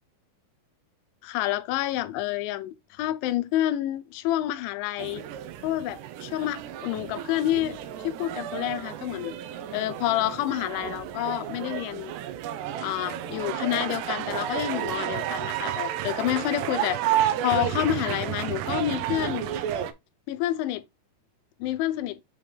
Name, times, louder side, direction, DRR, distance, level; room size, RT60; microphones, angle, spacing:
voice 1, 1.2-5.2 5.6-7.8 8.0-9.3 9.7-12.1 12.8-17.2 17.4-19.5 20.3-20.8 21.6-22.2, left 13 dB, 85° left, 3.0 m, -28 dB
sound 1, 5.0-19.9, right 11 dB, 80° right, 2.6 m, -31 dB
7.6 x 4.4 x 3.4 m
omnidirectional pair, 5.5 m